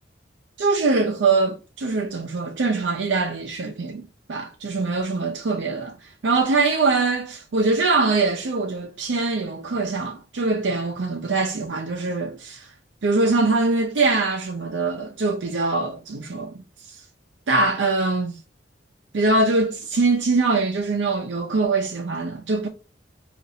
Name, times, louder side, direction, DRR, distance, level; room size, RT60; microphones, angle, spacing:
voice 1, 0.6-4.0 4.3-12.7 13.0-16.6 16.9-17.0 17.5-18.4 19.1-22.7, right 3 dB, 80° right, 0.5 m, -23 dB
5.0 x 2.5 x 2.7 m
head